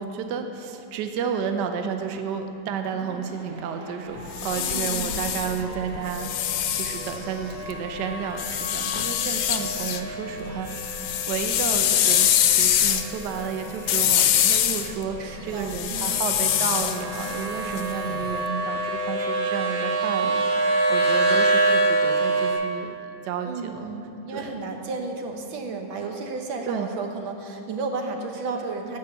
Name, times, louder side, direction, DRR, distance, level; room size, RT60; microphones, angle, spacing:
voice 1, 0.0-6.3 6.7-11.0 11.3-22.9 23.2-23.9 24.3-24.6 26.7-26.9, right 7 dB, 70° right, 6 dB, 1.2 m, -31 dB
sound 1, 2.9-22.5, right 2 dB, 45° right, 1.4 m, -28 dB
sound 2, 4.2-7.7 8.4-10.0 10.4-18.3, left 10 dB, 85° left, 1.4 m, -24 dB
voice 2, 4.6-5.3 15.2-16.2 23.4-29.0, right 4 dB, 85° right, 3 dB, 1.8 m, -33 dB
12.5 x 5.6 x 8.0 m, 2.9 s
omnidirectional pair, 2.1 m